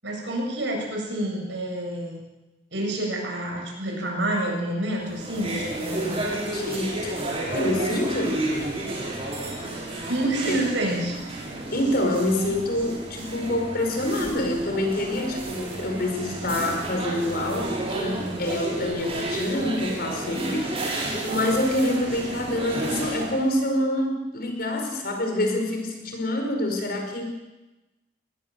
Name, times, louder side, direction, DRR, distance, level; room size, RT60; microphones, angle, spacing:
voice 1, 0.0-2.2 2.7-6.3 10.0-11.2, right 1 dB, 70° right, 0 dB, 7.6 m, -28 dB
sound 1, 5.0-23.5, right 2 dB, 30° right, 6.1 m, -31 dB
voice 2, 6.5-7.1 7.5-8.4 10.5-10.6 11.7-27.3, left 1 dB, 50° left, 4 dB, 5.3 m, -26 dB
22.5 x 19.5 x 7.8 m, 1.0 s
head